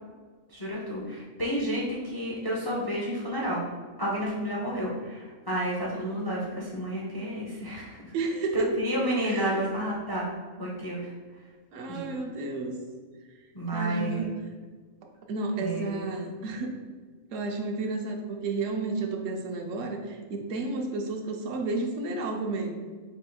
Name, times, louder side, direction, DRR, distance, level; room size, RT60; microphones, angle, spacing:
voice 1, 0.5-3.7 4.0-8.1 8.5-10.3 10.6-11.1 11.9-12.1 13.5-14.3 15.6-16.0, equal, 30° left, -5 dB, 0.4 m, -31 dB
voice 2, 8.1-8.8 9.2-9.6 11.7-12.7 13.7-14.3 15.3-16.7 17.3-22.7, right 3 dB, 75° right, 2 dB, 1.0 m, -31 dB
4.9 x 3.7 x 2.2 m, 1.5 s
omnidirectional pair, 1.4 m